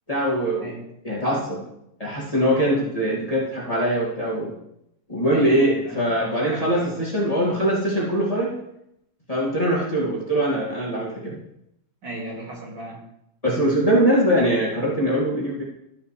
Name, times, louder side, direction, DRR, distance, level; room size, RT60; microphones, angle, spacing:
voice 1, 0.1-0.7 1.0-1.6 2.0-4.5 5.1-8.5 9.3-11.4 13.4-15.6, right 1 dB, 15° left, -6 dB, 2.2 m, -22 dB
voice 2, 5.3-7.0 12.0-13.0, right 2 dB, 60° right, -4 dB, 3.0 m, -36 dB
13.5 x 6.5 x 3.3 m, 0.80 s
omnidirectional pair, 2.2 m